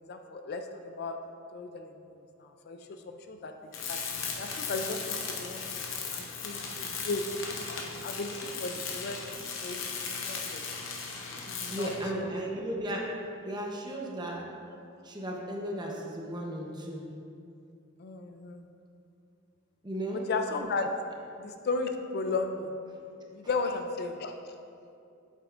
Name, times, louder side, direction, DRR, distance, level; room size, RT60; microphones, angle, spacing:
voice 1, 0.1-1.2 1.5-1.9 2.4-3.0 3.3-3.5 3.9-4.0 4.4-5.7 6.1-7.2 7.6-9.8 10.2-10.6 11.5-12.5 18.0-18.6 20.1-20.9 21.4-22.7 23.3-24.3, left 3 dB, 55° left, 6 dB, 0.4 m, -35 dB
Tools, 3.7-12.1, left 5 dB, 70° left, 0.9 m, -37 dB
voice 2, 11.7-13.0 13.4-14.4 15.0-17.0 19.8-20.2, right 1 dB, 20° right, -1 dB, 0.9 m, -35 dB
8.0 x 7.8 x 2.5 m, 2.6 s
head